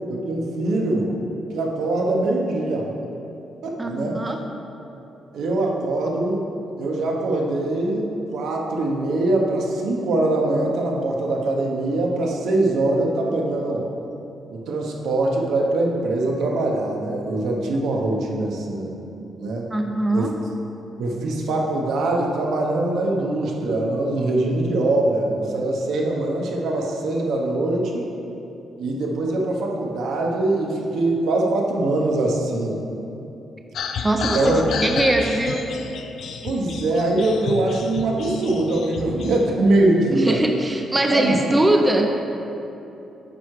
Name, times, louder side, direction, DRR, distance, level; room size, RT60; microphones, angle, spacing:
voice 1, 0.1-1.1 1.5-2.9 3.6-4.2 5.3-6.4 6.8-13.9 14.5-18.9 19.4-19.7 20.1-20.3 21.0-28.1 28.8-32.8 34.2-34.6 36.4-40.4 41.1-41.4, right 2 dB, 75° right, 0 dB, 1.1 m, -22 dB
voice 2, 1.8-2.2 3.8-4.4 19.7-20.4 34.0-35.7 40.1-42.1, right 1 dB, 10° right, 3 dB, 0.4 m, -22 dB
sound 1, 33.8-39.4, left 5 dB, 60° left, 0.5 m, -31 dB
9.1 x 4.8 x 4.9 m, 2.9 s
cardioid pair, 170°, 0 cm